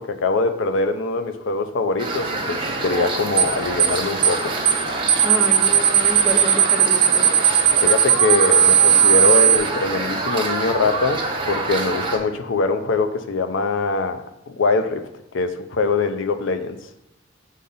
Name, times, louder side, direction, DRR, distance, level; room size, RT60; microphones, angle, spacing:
voice 1, 0.0-4.5 7.8-15.0 15.3-16.8, left 3 dB, 65° left, 8 dB, 0.5 m, -23 dB
sound 1, 2.0-12.2, right 3 dB, 25° right, 1.0 m, -26 dB
sound 2, 3.4-3.5 3.8-4.0 4.2-4.4 4.7-4.8 5.1-9.6, right 10 dB, 85° right, 0.6 m, -15 dB
voice 2, 5.2-7.3, equal, ahead, 2 dB, 0.6 m, -29 dB
5.5 x 3.7 x 5.4 m, 0.86 s
head